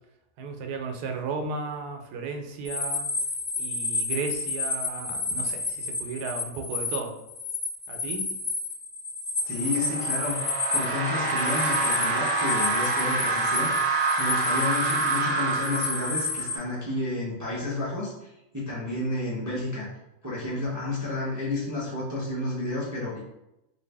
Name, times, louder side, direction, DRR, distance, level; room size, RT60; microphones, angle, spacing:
voice 1, 0.4-3.1 3.6-7.1 7.9-8.3, right 4 dB, 85° right, 3 dB, 1.1 m, -34 dB
sound 1, 2.7-7.0 7.3-16.6, left 3 dB, 75° left, 1.4 m, -31 dB
voice 2, 9.4-10.4 10.7-13.7 14.2-19.9 20.2-23.2, left 2 dB, 20° right, -8 dB, 0.5 m, -31 dB
sound 2, 9.6-16.7, right 3 dB, 60° right, 1.0 m, -27 dB
2.8 x 2.6 x 3.3 m, 0.89 s
omnidirectional pair, 1.7 m